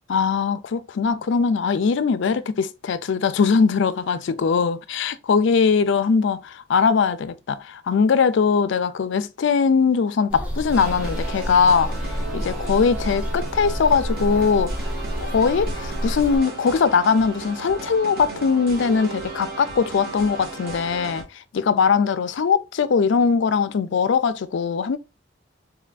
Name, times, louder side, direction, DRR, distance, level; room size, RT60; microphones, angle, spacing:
voice 1, 0.1-11.9 12.3-14.8 15.2-25.0, left 5 dB, 65° left, 0.4 m, -21 dB
sound 1, 10.3-16.4, equal, 5° right, 1.0 m, -29 dB
sound 2, 10.7-21.2, right 3 dB, 55° right, 1.3 m, -35 dB
3.7 x 3.3 x 2.4 m
head